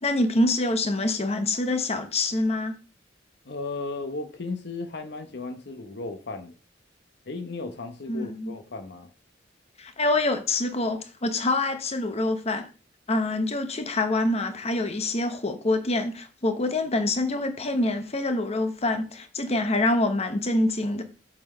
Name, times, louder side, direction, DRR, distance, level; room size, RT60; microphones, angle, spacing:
voice 1, 0.0-2.8 8.1-8.5 9.8-12.7 13.1-21.0, left 2 dB, 35° left, 1.0 m, -26 dB
voice 2, 3.4-6.5 7.3-9.1, left 3 dB, 65° left, 0.9 m, -35 dB
7.5 x 4.4 x 5.5 m
head